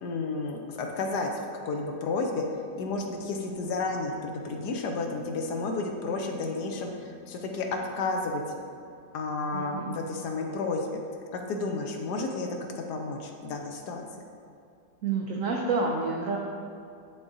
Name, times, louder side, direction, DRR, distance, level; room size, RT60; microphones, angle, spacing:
voice 1, 0.0-8.4 9.1-11.0 11.3-12.5 12.8-14.0, left 3 dB, 70° left, 2 dB, 1.1 m, -32 dB
Guitar, 2.7-9.3, left 3 dB, 40° left, 0.9 m, -50 dB
voice 2, 9.5-9.9 15.0-16.4, right 4 dB, 85° right, 0 dB, 0.7 m, -29 dB
10.5 x 3.6 x 2.6 m, 2.5 s
omnidirectional pair, 2.0 m